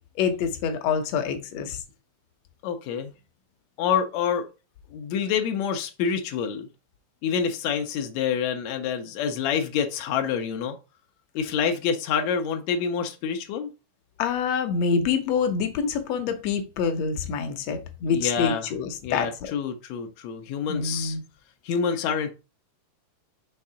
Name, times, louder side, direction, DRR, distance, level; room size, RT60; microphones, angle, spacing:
voice 1, 0.2-1.8 14.2-19.3 20.7-21.2, left 6 dB, 70° left, 1.6 m, -26 dB
voice 2, 2.6-3.1 3.8-4.4 4.9-6.7 7.2-10.7 11.3-13.7 18.1-18.7 19.0-21.2 21.6-22.3, left 7 dB, 90° left, 1.5 m, -27 dB
5.7 x 3.6 x 5.5 m
omnidirectional pair, 4.1 m